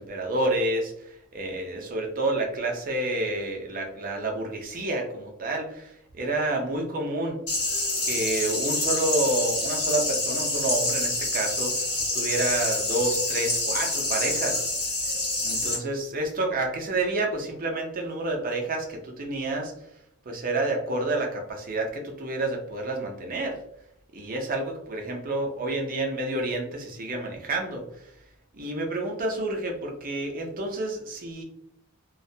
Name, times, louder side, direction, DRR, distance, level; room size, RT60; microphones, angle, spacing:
voice 1, 0.0-7.4 8.0-14.6 15.4-19.7 20.3-23.6 24.1-28.1 28.5-31.4, right 2 dB, 40° right, 1 dB, 0.5 m, -29 dB
sound 1, 7.5-15.8, left 2 dB, 80° left, 1.0 m, -27 dB
2.3 x 2.1 x 2.6 m, 0.75 s
head